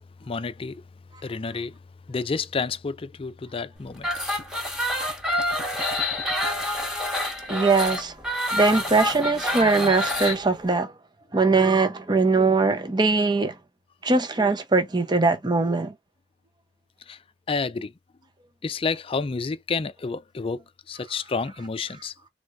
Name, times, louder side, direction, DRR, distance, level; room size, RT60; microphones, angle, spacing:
voice 1, 0.2-0.8 1.2-1.8 2.1-4.1 17.1-17.2 17.5-17.9 18.6-22.1, left 4 dB, 30° left, 0.4 m, -30 dB
sound 1, 4.0-10.4, left 1 dB, 5° right, 1.0 m, -27 dB
voice 2, 7.5-8.1 8.5-10.9 11.3-13.5 14.0-15.9, right 3 dB, 25° right, 0.7 m, -21 dB
3.8 x 3.2 x 3.1 m
head